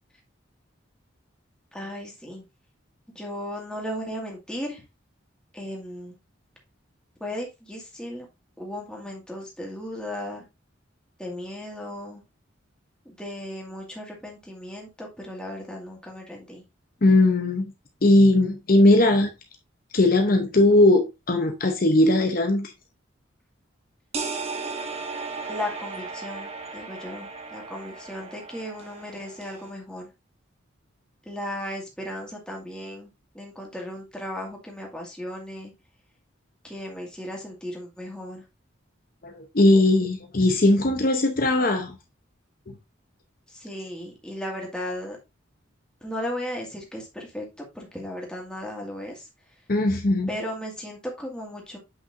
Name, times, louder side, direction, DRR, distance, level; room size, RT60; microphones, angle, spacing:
voice 1, 1.7-2.4 3.2-4.8 5.5-6.2 7.2-8.3 8.6-10.5 11.2-12.2 13.1-16.6 25.5-30.1 31.2-35.7 36.6-38.4 43.5-45.2 46.0-49.3 50.3-51.8, left 1 dB, 5° left, 2.0 m, -36 dB
voice 2, 17.0-17.6 18.0-19.3 19.9-22.7 39.2-41.9 49.7-50.3, left 2 dB, 45° left, 0.8 m, -19 dB
sound 1, 24.1-29.7, right 4 dB, 30° right, 1.2 m, -36 dB
8.2 x 5.8 x 2.6 m
head